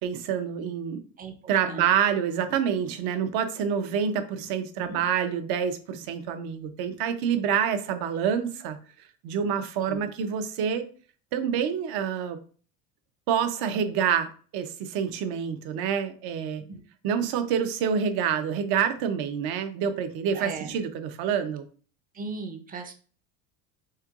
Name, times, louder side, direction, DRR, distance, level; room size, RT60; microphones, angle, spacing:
voice 1, 0.0-1.0 1.5-8.8 9.2-10.9 11.3-12.4 13.3-16.6 17.0-21.6, right 8 dB, 60° right, 9 dB, 0.7 m, -27 dB
voice 2, 20.3-20.8 22.1-22.9, right 4 dB, 20° right, 6 dB, 0.5 m, -38 dB
4.4 x 3.6 x 2.4 m, 0.41 s
cardioid pair, 135°, 41 cm